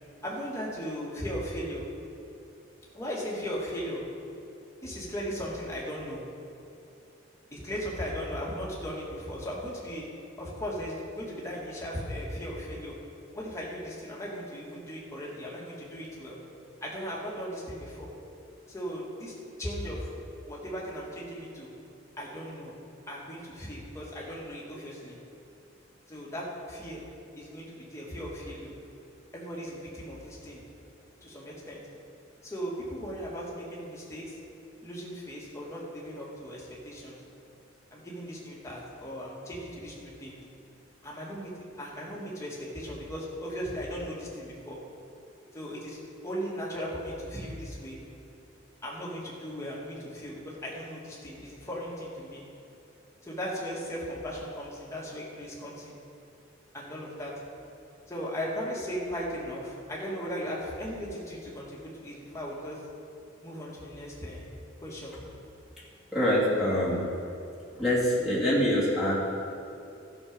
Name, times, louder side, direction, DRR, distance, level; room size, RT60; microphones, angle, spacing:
voice 1, 0.2-1.8 2.9-4.0 4.8-6.2 7.5-10.0 10.4-12.9 13.3-16.4 16.8-18.1 18.7-20.1 20.5-21.7 22.2-22.7 23.1-25.1 26.1-27.0 27.4-28.7 29.3-30.6 31.2-31.8 32.4-34.4 34.8-37.2 37.9-40.4 41.0-41.5 41.8-44.8 45.5-46.0 46.2-48.0 48.8-52.4 53.2-55.9 56.7-57.3 58.1-62.8 63.4-64.5 64.8-65.1, equal, 15° left, -5 dB, 2.2 m, -37 dB
voice 2, 66.1-67.0 67.7-69.1, equal, ahead, -9 dB, 2.7 m, -25 dB
14.0 x 6.7 x 5.4 m, 2.8 s
head